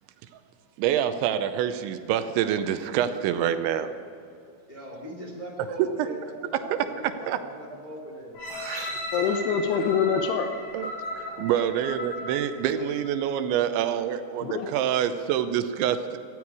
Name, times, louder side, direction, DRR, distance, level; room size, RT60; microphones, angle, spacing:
voice 1, 0.8-3.9 7.3-7.4 8.5-9.2 10.7-16.2, right 10 dB, 80° right, 10 dB, 2.9 m, -27 dB
voice 2, 4.7-8.4, equal, 20° left, -1 dB, 1.0 m, -40 dB
sound 1, 8.3-13.3 13.9-14.0, left 1 dB, 50° left, 5.5 m, -36 dB
voice 3, 8.7-10.5 14.4-14.7, left 7 dB, 80° left, 5 dB, 2.4 m, -26 dB
18.0 x 14.5 x 4.8 m, 2.5 s
omnidirectional pair, 5.7 m